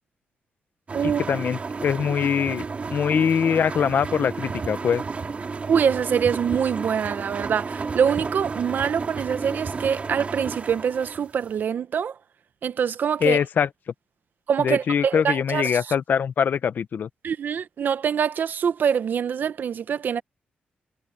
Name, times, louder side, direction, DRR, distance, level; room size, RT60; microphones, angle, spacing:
sound 1, 0.9-11.6, right 4 dB, 40° right, 2.3 m, -32 dB
voice 1, 1.0-2.6 2.9-5.0 13.2-13.7 14.6-17.1, left 7 dB, 60° left, 0.9 m, -23 dB
voice 2, 5.7-12.1 12.6-13.4 14.5-15.8 17.2-20.2, right 7 dB, 65° right, 0.9 m, -24 dB
wide cardioid pair, 115°, 3 cm